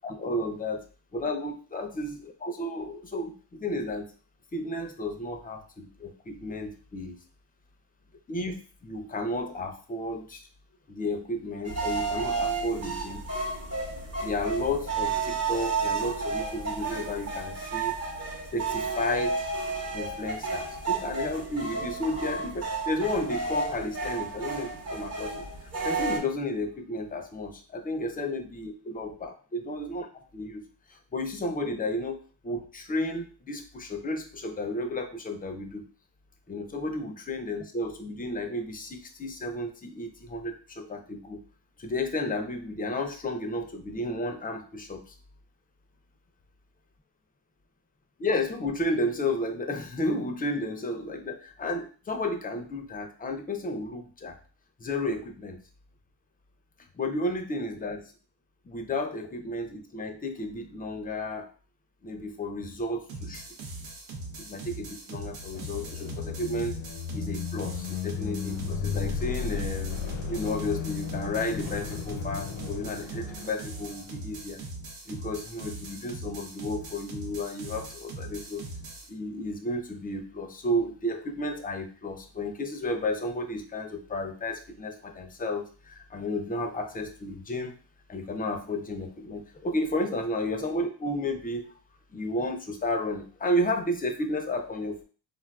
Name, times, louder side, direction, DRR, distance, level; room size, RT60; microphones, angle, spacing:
voice 1, 0.0-0.8 1.1-4.1 4.5-7.2 8.3-10.4 10.9-13.2 14.2-18.0 18.5-19.5 19.9-25.4 25.8-30.1 30.3-30.6 30.9-32.2 32.4-35.9 36.5-41.4 41.8-45.0 48.2-54.4 54.8-55.6 57.0-58.0 58.7-61.5 62.0-63.4 64.4-66.8 67.1-70.0 70.3-74.6 75.1-78.6 79.1-87.7 88.1-91.7 92.1-95.0, left 1 dB, 20° left, 5 dB, 0.5 m, -32 dB
sound 1, 11.6-26.2, right 4 dB, 35° right, 0.8 m, -32 dB
sound 2, 63.1-79.1, right 2 dB, 90° right, 0.7 m, -41 dB
sound 3, 65.3-74.1, left 7 dB, 80° left, 0.7 m, -35 dB
3.5 x 2.4 x 2.3 m, 0.38 s
cardioid pair, 80°, 46 cm